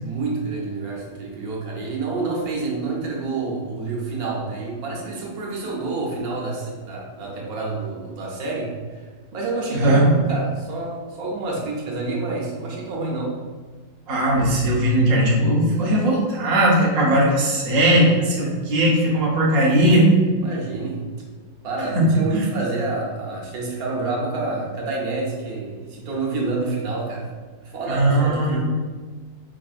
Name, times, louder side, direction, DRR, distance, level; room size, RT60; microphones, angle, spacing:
voice 1, 0.0-13.3 18.3-18.6 20.4-21.0 21.6-27.3 27.6-28.6, right 3 dB, 60° right, -2 dB, 1.1 m, -28 dB
voice 2, 9.7-10.1 14.1-20.2 21.9-22.1 22.3-22.4 27.9-28.6, right 1 dB, 85° right, -5 dB, 0.3 m, -18 dB
4.7 x 2.6 x 2.4 m, 1.5 s
omnidirectional pair, 2.0 m